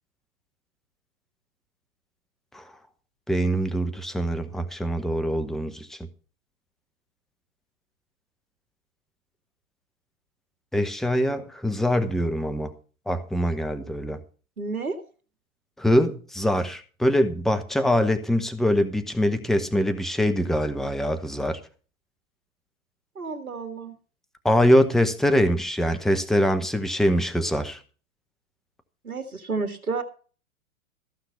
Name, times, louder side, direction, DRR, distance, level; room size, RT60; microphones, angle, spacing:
voice 1, 3.3-6.0 10.7-12.7 13.1-14.2 15.8-21.6 24.4-27.8, equal, ahead, 10 dB, 0.9 m, -23 dB
voice 2, 14.6-15.0 23.2-23.9 29.0-30.0, right 4 dB, 85° right, 6 dB, 2.0 m, -30 dB
14.5 x 5.9 x 6.9 m, 0.38 s
figure-of-eight pair, 115°, 42 cm